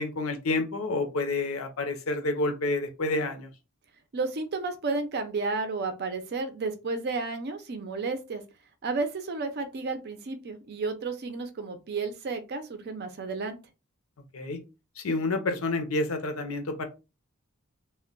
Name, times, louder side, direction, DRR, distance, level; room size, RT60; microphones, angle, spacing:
voice 1, 0.0-3.5 14.3-14.6 15.0-16.8, left 2 dB, 70° left, 0.6 m, -29 dB
voice 2, 4.1-8.4 8.8-13.6, right 3 dB, 50° right, 0.5 m, -32 dB
2.2 x 2.1 x 3.7 m
head